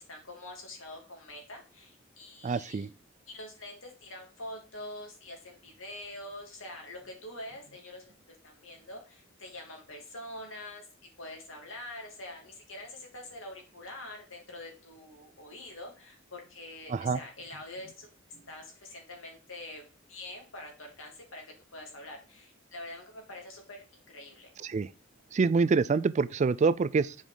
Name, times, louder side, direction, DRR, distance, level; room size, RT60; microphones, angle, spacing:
voice 1, 0.0-2.9 3.3-8.1 8.4-10.9 11.2-18.1 18.5-19.8 20.1-21.4 21.7-24.5, left 1 dB, 85° left, 2.6 m, -45 dB
voice 2, 2.4-2.9 16.9-17.2 24.6-24.9 25.3-27.2, right 4 dB, 35° right, 0.3 m, -26 dB
7.3 x 5.1 x 3.8 m
head